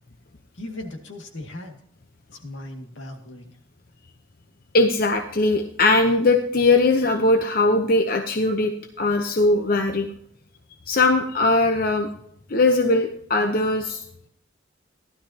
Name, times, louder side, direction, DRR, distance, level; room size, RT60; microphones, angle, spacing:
voice 1, 0.5-1.8 2.3-3.5, left 1 dB, 75° left, 3 dB, 2.2 m, -37 dB
voice 2, 4.7-10.1 10.9-12.1 12.5-14.0, left 2 dB, 50° left, 4 dB, 0.8 m, -20 dB
16.0 x 12.0 x 2.9 m, 0.69 s
head